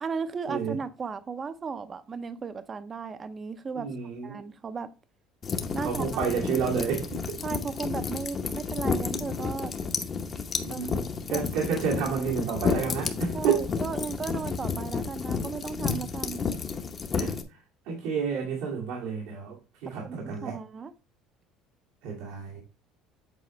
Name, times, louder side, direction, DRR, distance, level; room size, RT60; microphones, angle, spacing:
voice 1, 0.0-3.9 4.2-4.9 5.7-6.2 7.4-9.7 10.7-10.9 11.3-11.4 13.3-16.4 20.0-20.9, right 5 dB, 25° right, 0.6 m, -35 dB
voice 2, 3.8-4.5 5.8-7.4 10.6-13.6 17.1-17.4 17.9-19.6 19.8-20.6 22.0-22.6, right 6 dB, 85° right, 2.1 m, -30 dB
sound 1, 5.4-17.4, left 5 dB, 30° left, 0.8 m, -31 dB
8.4 x 4.3 x 3.1 m
cardioid pair, 135°, 0 cm